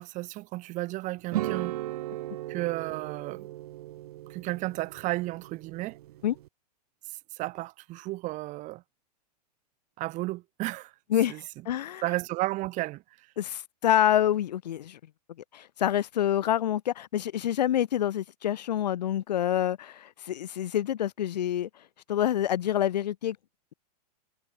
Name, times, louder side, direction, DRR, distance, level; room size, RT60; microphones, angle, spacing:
voice 1, 0.0-1.8 2.5-3.5 4.3-6.0 7.3-8.8 10.0-10.9 11.3-11.4 12.0-13.3, right 19 dB, 35° right, 2.1 m, -33 dB
sound 1, 1.3-6.5, right 15 dB, 65° right, 4.7 m, -37 dB
voice 2, 11.1-12.0 13.4-15.0 15.5-21.7 22.1-23.4, left 11 dB, 80° left, 0.9 m, -27 dB
hypercardioid pair, 125°, 21 cm